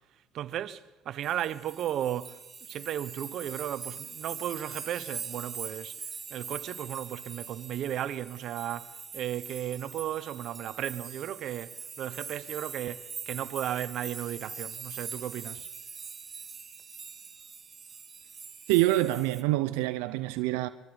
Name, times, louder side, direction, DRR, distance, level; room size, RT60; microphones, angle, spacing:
voice 1, 0.3-15.7, right 11 dB, 60° right, 0.9 m, -35 dB
sound 1, 1.2-19.4, right 5 dB, 30° right, 2.2 m, -43 dB
voice 2, 18.7-20.7, right 17 dB, 85° right, 0.6 m, -26 dB
24.5 x 22.5 x 5.1 m
supercardioid pair, 85°, 0 cm